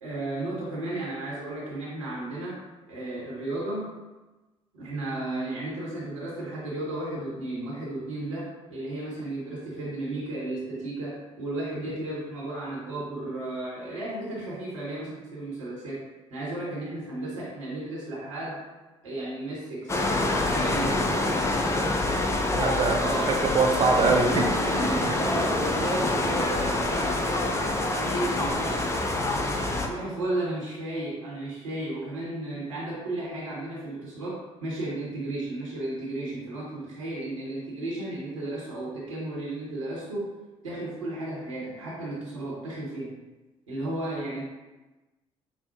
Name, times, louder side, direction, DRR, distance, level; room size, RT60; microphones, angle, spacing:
voice 1, 0.0-2.6 2.9-3.9 4.7-16.0 16.3-18.6 19.0-19.9 20.2-21.3 23.0-23.3 24.0-28.9 29.6-40.3 40.6-43.1 43.7-44.4, right 1 dB, 80° right, -6 dB, 1.1 m, -34 dB
sound 1, 19.9-29.9, left 2 dB, 15° left, 0.5 m, -26 dB
voice 2, 21.7-24.5 25.0-25.1, right 4 dB, 30° right, 2 dB, 0.5 m, -25 dB
5.3 x 2.0 x 2.9 m, 1.1 s
figure-of-eight pair, 50°, 16 cm